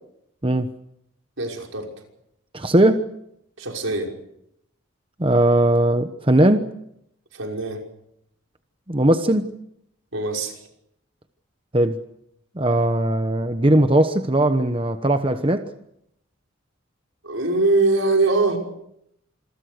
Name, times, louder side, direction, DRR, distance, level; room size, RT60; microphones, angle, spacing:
voice 1, 1.4-1.9 3.6-4.1 7.3-7.8 10.1-10.6 17.2-18.6, right 3 dB, 80° right, 5.9 m, -22 dB
voice 2, 2.5-3.0 5.2-6.7 8.9-9.5 11.7-12.0 12.6-15.7, right 1 dB, 25° right, 1.1 m, -19 dB
27.5 x 22.5 x 6.8 m
head